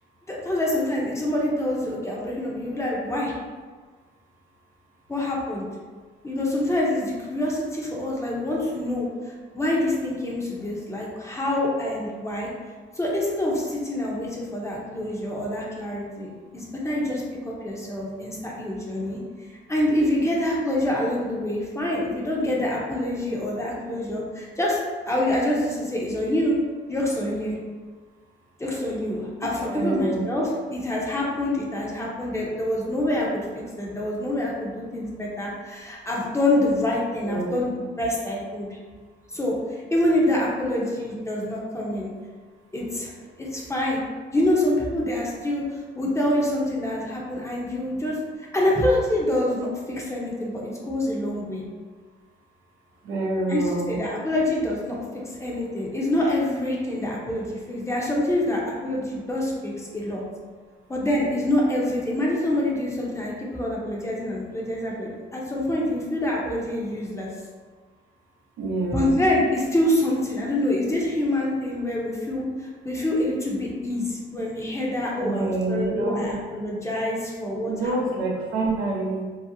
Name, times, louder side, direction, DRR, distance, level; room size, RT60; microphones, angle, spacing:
voice 1, 0.3-3.3 5.1-5.6 6.2-9.1 9.5-12.5 13.0-19.2 19.7-24.8 25.1-26.6 26.9-27.6 28.6-33.4 33.8-38.7 39.3-39.5 39.9-42.1 42.7-43.1 43.4-44.0 44.3-48.2 48.5-51.6 53.5-60.2 60.9-67.3 68.9-77.7, left 1 dB, 15° left, -4 dB, 0.6 m, -26 dB
voice 2, 29.6-30.2 37.2-37.6 53.0-53.9 68.6-69.2 75.1-76.4 77.7-79.2, right 2 dB, 80° right, -1 dB, 0.6 m, -27 dB
2.7 x 2.0 x 2.6 m, 1.5 s
cardioid pair, 90°, 20 cm